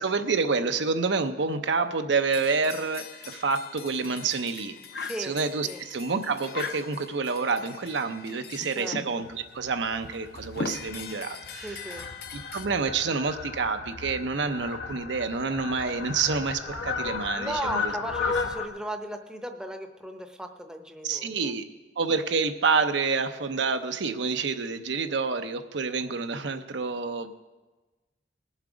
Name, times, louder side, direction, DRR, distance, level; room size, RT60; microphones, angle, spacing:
voice 1, 0.0-4.7 5.2-12.0 12.3-17.9 21.0-21.6 22.0-27.3, right 4 dB, 75° right, 8 dB, 0.7 m, -28 dB
sound 1, 2.3-9.3 10.0-12.7, left 5 dB, 55° left, 0.7 m, -40 dB
voice 2, 5.0-5.4 5.6-5.8 8.7-9.0 11.5-12.1 17.4-21.5, right 1 dB, 5° right, 6 dB, 0.7 m, -36 dB
Fowl, 9.2-18.7, left 5 dB, 85° left, 1.1 m, -35 dB
20.0 x 7.3 x 5.0 m, 1.2 s
head